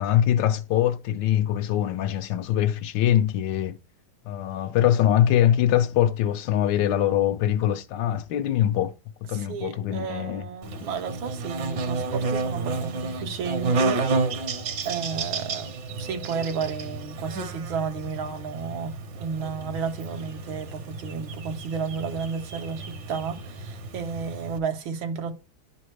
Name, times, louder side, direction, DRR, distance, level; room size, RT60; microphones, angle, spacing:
voice 1, 0.0-3.8 4.2-8.9 9.3-10.4, left 11 dB, 75° left, 1.2 m, -23 dB
voice 2, 9.3-14.0 14.9-15.7 16.0-25.3, right 6 dB, 90° right, 1.8 m, -32 dB
Buzz, 10.6-24.6, right 3 dB, 75° right, 1.7 m, -31 dB
11.0 x 3.9 x 3.2 m
omnidirectional pair, 2.1 m